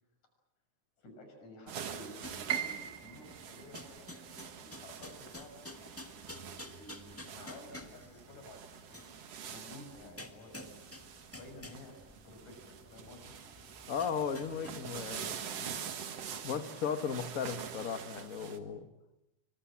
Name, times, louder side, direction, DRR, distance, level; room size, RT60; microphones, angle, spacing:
voice 1, 1.0-9.0 9.5-13.4, left 1 dB, 70° left, 4 dB, 7.8 m, -53 dB
sound 1, 1.7-18.6, right 8 dB, 60° right, 2.5 m, -46 dB
sound 2, 2.2-15.3, left 1 dB, 10° left, 0.7 m, -51 dB
Piano, 2.5-8.4 8.8-9.9 10.3-10.4 11.1-11.5, right 9 dB, 35° right, 1.8 m, -43 dB
voice 2, 13.9-15.9 16.4-18.9, left 7 dB, 45° left, 9 dB, 1.0 m, -36 dB
26.5 x 24.5 x 7.5 m, 0.94 s
omnidirectional pair, 3.4 m